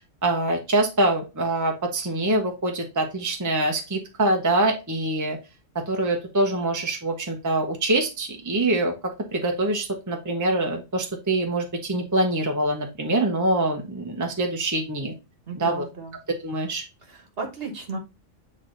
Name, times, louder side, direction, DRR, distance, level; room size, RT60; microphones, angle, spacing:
voice 1, 0.2-5.4 5.7-8.9 9.3-15.1 15.6-15.8 16.4-16.8, right 2 dB, 15° right, 3 dB, 0.8 m, -24 dB
voice 2, 15.5-16.1 17.0-18.0, right 3 dB, 50° right, 4 dB, 1.4 m, -34 dB
8.1 x 3.2 x 3.8 m, 0.27 s
omnidirectional pair, 1.3 m